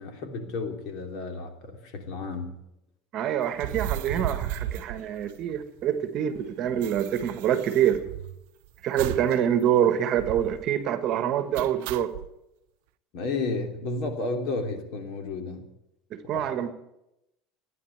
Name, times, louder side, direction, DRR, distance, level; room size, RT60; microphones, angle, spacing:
voice 1, 0.0-2.6 13.1-15.7 16.3-16.5, left 3 dB, 55° left, 2.9 m, -32 dB
voice 2, 3.1-8.0 8.8-12.1 16.1-16.7, right 10 dB, 40° right, 1.3 m, -26 dB
sound 1, 3.5-5.8 6.1-6.2 6.4-8.5 9.0-9.4 9.7-9.8 10.1-10.6 11.5-12.3, right 12 dB, 80° right, 0.6 m, -35 dB
15.5 x 9.8 x 9.2 m
cardioid pair, 155°, 0 cm